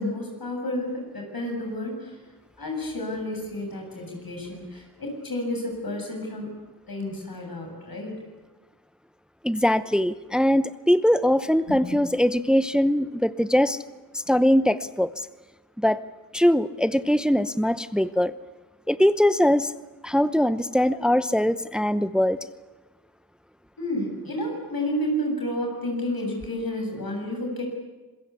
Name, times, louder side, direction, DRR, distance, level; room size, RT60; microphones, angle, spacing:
voice 1, 0.0-2.1 2.6-6.5 6.9-8.1 11.7-12.0 23.8-27.6, left 1 dB, 85° left, 2 dB, 7.7 m, -31 dB
voice 2, 9.4-13.8 14.3-15.1 15.8-16.0 16.3-18.3 18.9-19.7 20.0-22.4, equal, ahead, 13 dB, 0.8 m, -21 dB
26.5 x 21.5 x 8.4 m, 1.2 s
wide cardioid pair, 50°, 35 cm